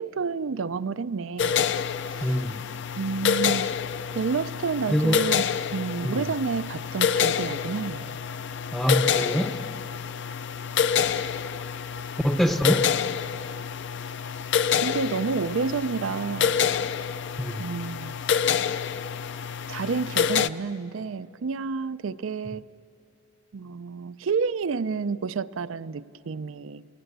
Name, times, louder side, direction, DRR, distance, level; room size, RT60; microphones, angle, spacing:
voice 1, 0.0-1.6 2.1-2.4 3.0-3.7 4.1-5.5 5.7-8.2 14.8-16.5 17.6-18.2 19.7-22.7 23.5-26.9, right 5 dB, 85° right, 16 dB, 0.5 m, -29 dB
sound 1, 1.4-20.5, left 7 dB, 60° left, 0.5 m, -27 dB
voice 2, 2.2-2.6 4.9-5.2 6.0-6.3 8.7-9.6 12.2-12.9 17.4-17.6, equal, 5° left, 6 dB, 0.6 m, -24 dB
29.5 x 19.5 x 8.1 m, 2.6 s
head